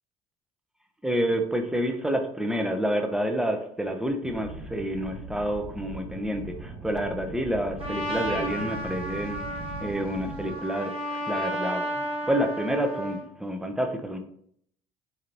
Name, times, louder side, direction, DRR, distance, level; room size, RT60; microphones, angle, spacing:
voice 1, 1.0-14.2, equal, 5° right, 5 dB, 0.7 m, -29 dB
sound 1, 4.2-10.5, right 2 dB, 90° right, 1.3 m, -40 dB
Trumpet, 7.8-13.3, equal, 30° right, 1.9 m, -33 dB
4.7 x 3.8 x 3.0 m, 0.66 s
figure-of-eight pair, 55°, 19 cm